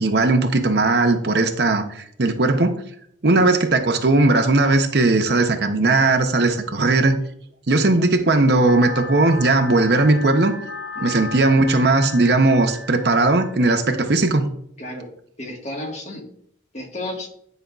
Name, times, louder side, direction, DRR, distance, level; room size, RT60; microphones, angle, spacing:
voice 1, 0.0-2.8 3.2-7.2 7.7-10.5 11.0-14.5, right 2 dB, 55° right, 6 dB, 0.7 m, -18 dB
sound 1, 8.7-13.7, left 2 dB, 75° left, 1.6 m, -34 dB
voice 2, 15.4-16.3 16.7-17.3, left 1 dB, 35° left, 0 dB, 1.6 m, -32 dB
10.0 x 5.3 x 2.4 m, 0.66 s
head